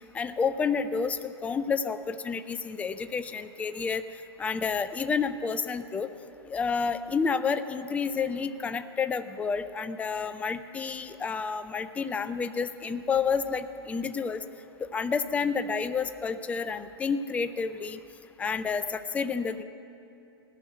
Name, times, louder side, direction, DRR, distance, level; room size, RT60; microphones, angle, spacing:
voice 1, 0.1-4.0 4.4-6.1 6.5-14.4 14.9-18.0 18.4-19.6, left 5 dB, 10° left, 11 dB, 0.4 m, -30 dB
16.5 x 6.1 x 9.8 m, 2.7 s
hypercardioid pair, 120°, 14 cm